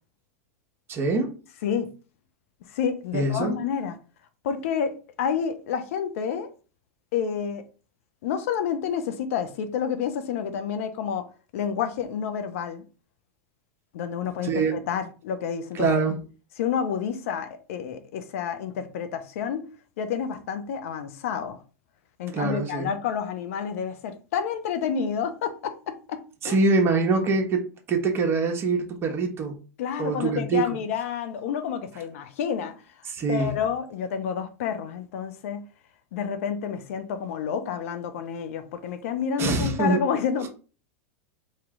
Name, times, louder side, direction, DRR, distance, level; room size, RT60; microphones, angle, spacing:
voice 1, 0.9-1.4 3.1-3.6 14.4-14.7 15.7-16.2 22.3-22.9 26.4-27.6 27.9-29.6 30.0-30.8 33.1-33.6 39.4-40.1 40.4-40.5, right 3 dB, 30° right, 1.1 m, -24 dB
voice 2, 2.7-4.0 4.4-6.5 7.1-7.6 8.2-11.2 11.5-12.8 13.9-15.9 16.6-19.7 20.0-21.6 22.2-26.2 26.5-26.6 29.8-32.7 33.3-35.6 36.1-40.5, left 7 dB, 70° left, 0.7 m, -29 dB
3.1 x 2.9 x 3.7 m
hypercardioid pair, 105°, 8 cm